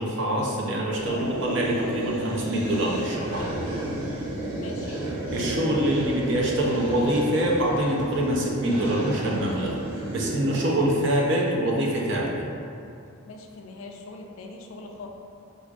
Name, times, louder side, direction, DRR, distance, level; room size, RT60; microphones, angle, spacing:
voice 1, 0.0-3.5 5.3-9.7 10.1-12.3, right 1 dB, 55° right, -3 dB, 0.5 m, -25 dB
sound 1, 0.9-11.4, right 1 dB, 90° right, 0.9 m, -32 dB
voice 2, 4.6-5.0 13.3-15.1, left 3 dB, 70° left, 2 dB, 0.3 m, -41 dB
4.6 x 2.4 x 2.4 m, 2.5 s
head